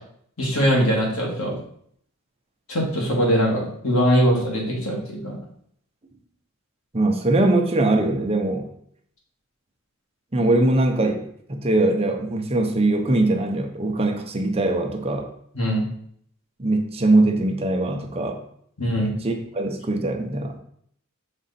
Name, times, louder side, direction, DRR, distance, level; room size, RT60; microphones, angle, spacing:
voice 1, 0.4-1.6 2.7-5.4 15.5-15.8 18.8-19.1, equal, 85° left, -2 dB, 2.0 m, -21 dB
voice 2, 6.9-8.7 10.3-11.2 11.5-15.3 16.6-18.4 18.9-20.6, right 2 dB, 30° right, 4 dB, 0.7 m, -21 dB
6.2 x 3.8 x 4.1 m, 0.65 s
head